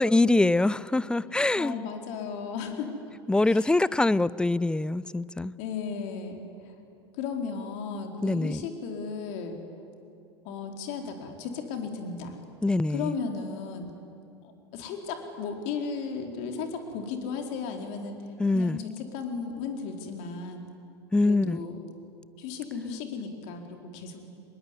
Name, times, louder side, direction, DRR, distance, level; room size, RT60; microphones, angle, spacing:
voice 1, 0.0-1.8 3.3-5.5 8.2-8.6 12.6-13.1 18.4-18.8 21.1-21.6, left 2 dB, 5° left, 0.6 m, -24 dB
voice 2, 1.6-2.9 3.4-3.8 5.6-6.8 7.1-9.6 10.4-12.4 12.9-13.9 14.7-20.7 21.2-21.8 22.4-24.2, left 5 dB, 55° left, 4.2 m, -35 dB
25.5 x 21.0 x 10.0 m
hypercardioid pair, 85°, 14 cm